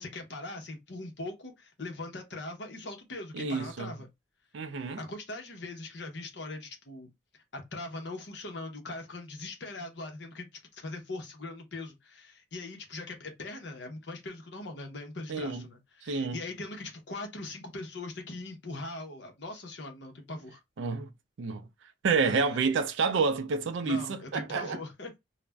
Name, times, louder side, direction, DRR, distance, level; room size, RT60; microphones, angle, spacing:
voice 1, 0.0-4.1 4.7-10.5 10.7-20.6 22.2-22.6 23.8-25.2, left 2 dB, 60° left, 0.7 m, -41 dB
voice 2, 3.3-3.9 4.5-5.0 15.3-15.6 16.0-16.4 20.8-21.1 21.4-21.7 22.0-24.8, right 4 dB, 65° right, 0.4 m, -29 dB
2.4 x 2.1 x 3.3 m
head